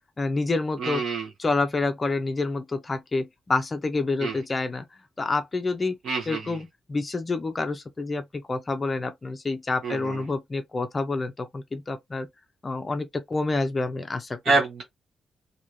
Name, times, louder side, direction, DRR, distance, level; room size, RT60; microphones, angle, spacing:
voice 1, 0.2-1.0 1.4-4.9 5.2-5.9 6.3-12.3 12.6-14.4, left 3 dB, 25° left, 0.5 m, -28 dB
voice 2, 0.8-1.3 4.2-4.4 6.0-6.6 9.8-10.2 14.4-14.8, right 3 dB, 65° right, 1.1 m, -26 dB
3.0 x 2.7 x 2.6 m
cardioid pair, 140°, 0 cm